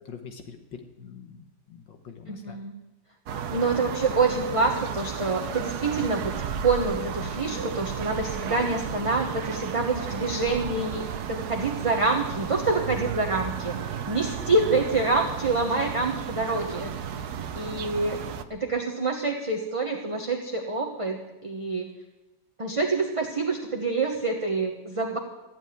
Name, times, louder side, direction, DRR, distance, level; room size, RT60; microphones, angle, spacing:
voice 1, 0.1-0.6 1.0-2.6, left 6 dB, 75° left, 5 dB, 1.8 m, -44 dB
voice 2, 2.3-2.7 3.5-6.4 6.6-16.9 17.5-18.2 18.5-21.9 22.6-25.2, right 3 dB, 20° right, 1 dB, 0.9 m, -26 dB
sound 1, 3.3-18.4, right 7 dB, 65° right, 1.2 m, -33 dB
15.0 x 7.7 x 9.3 m, 1.1 s
omnidirectional pair, 2.1 m